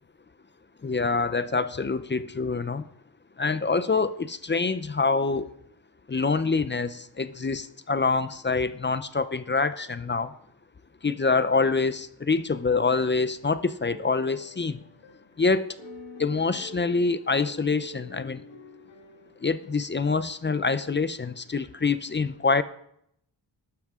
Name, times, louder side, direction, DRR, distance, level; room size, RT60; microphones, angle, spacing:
voice 1, 0.8-2.8 3.4-5.4 6.1-10.3 11.0-14.8 15.4-15.8 16.2-18.4 19.4-22.6, left 4 dB, 25° left, 13 dB, 0.5 m, -26 dB
sound 1, 12.9-19.9 20.5-20.8, left 3 dB, 80° left, 1.9 m, -47 dB
13.5 x 12.0 x 3.6 m, 0.72 s
wide cardioid pair, 145°, 44 cm